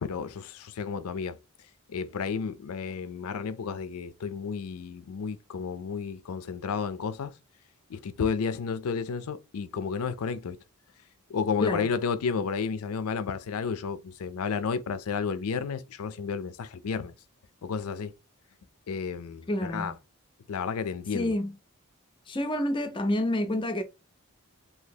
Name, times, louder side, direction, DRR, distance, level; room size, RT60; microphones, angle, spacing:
voice 1, 0.0-1.4 1.9-7.3 7.9-10.6 11.3-17.1 17.6-18.1 18.9-19.9 20.5-21.3, left 5 dB, 90° left, 0.4 m, -32 dB
voice 2, 11.6-12.0 19.5-19.9 21.1-21.5 22.3-23.8, left 1 dB, 25° left, 0.5 m, -28 dB
2.8 x 2.7 x 3.9 m
head